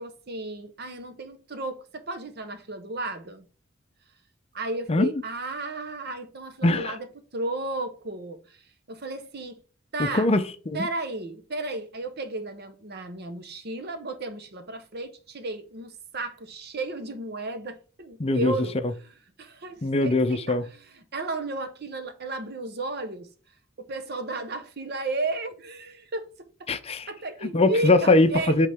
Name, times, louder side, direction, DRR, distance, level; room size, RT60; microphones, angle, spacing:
voice 1, 0.0-3.4 4.5-8.6 8.9-9.6 9.9-10.3 10.7-23.3 23.8-26.7 27.1-28.6, right 2 dB, 55° right, 1.0 m, -34 dB
voice 2, 6.6-6.9 10.0-10.9 18.2-18.5 19.8-20.6 26.7-27.1 27.4-28.7, left 2 dB, 30° left, 0.5 m, -22 dB
8.3 x 3.7 x 3.5 m
head